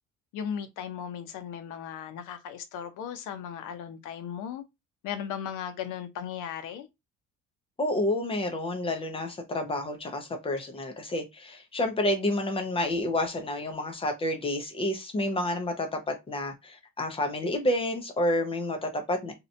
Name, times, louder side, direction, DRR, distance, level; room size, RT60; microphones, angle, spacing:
voice 1, 0.3-4.6 5.0-6.9, left 8 dB, 85° left, 0.6 m, -36 dB
voice 2, 7.8-19.3, left 1 dB, 20° left, 0.3 m, -29 dB
2.7 x 2.1 x 2.5 m
cardioid pair, 180°, 30 cm